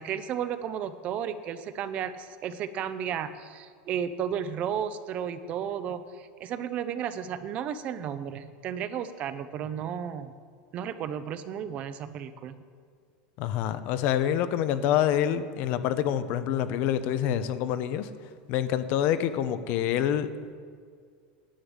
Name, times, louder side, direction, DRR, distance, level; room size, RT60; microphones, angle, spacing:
voice 1, 0.0-10.3 10.7-12.6, right 8 dB, 30° right, 12 dB, 0.6 m, -33 dB
voice 2, 13.4-18.1 18.5-20.3, left 10 dB, 45° left, 12 dB, 0.7 m, -26 dB
10.0 x 8.7 x 8.0 m, 2.1 s
supercardioid pair, 165°, 4 cm